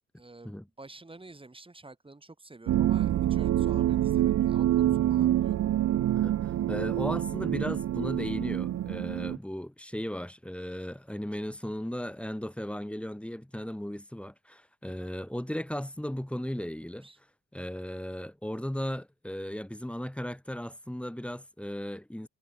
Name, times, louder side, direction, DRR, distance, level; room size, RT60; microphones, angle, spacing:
voice 1, 0.2-5.6 17.0-17.2, right 2 dB, 15° right, 7.0 m, -49 dB
sound 1, 2.7-9.4, right 12 dB, 60° right, 0.8 m, -26 dB
voice 2, 6.1-17.1 17.5-22.3, equal, 5° left, 2.5 m, -36 dB
cardioid pair, 90°, 30 cm